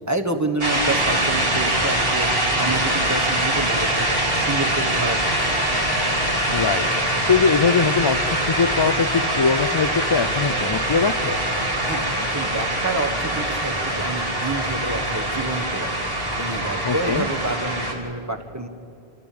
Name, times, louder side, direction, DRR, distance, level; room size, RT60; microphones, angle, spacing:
voice 1, 0.1-4.1 4.3-5.5 11.9-15.9 16.4-18.7, right 2 dB, 15° right, 7 dB, 1.4 m, -28 dB
sound 1, 0.6-17.9, right 1 dB, 65° right, 3.9 m, -23 dB
voice 2, 6.5-6.9 7.3-11.4 16.8-17.3, left 5 dB, 40° left, 11 dB, 0.3 m, -21 dB
26.5 x 14.5 x 8.6 m, 2.8 s
omnidirectional pair, 1.1 m